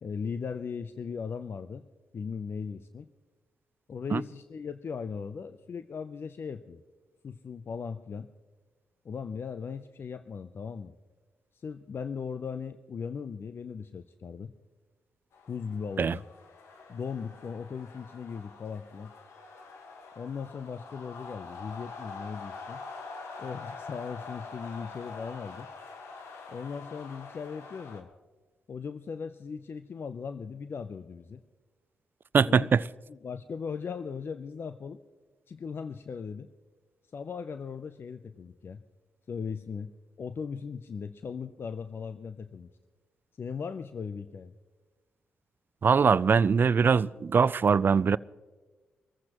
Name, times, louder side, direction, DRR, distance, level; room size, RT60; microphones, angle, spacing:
voice 1, 0.0-1.8 2.1-3.1 3.9-6.8 7.2-8.3 9.0-10.9 11.5-14.5 15.5-16.3 16.9-19.1 20.2-22.8 23.4-25.7 26.5-28.1 28.7-31.4 32.4-32.7 33.1-35.0 35.5-36.5 37.1-38.8 39.3-39.9 40.2-42.7 43.4-44.5, left 6 dB, 55° left, 0.6 m, -38 dB
sound 1, 15.3-28.0, left 4 dB, 75° left, 1.5 m, -45 dB
voice 2, 32.3-32.8 45.8-48.2, right 6 dB, 45° right, 0.4 m, -22 dB
23.5 x 14.5 x 3.0 m
hypercardioid pair, 45°, 5 cm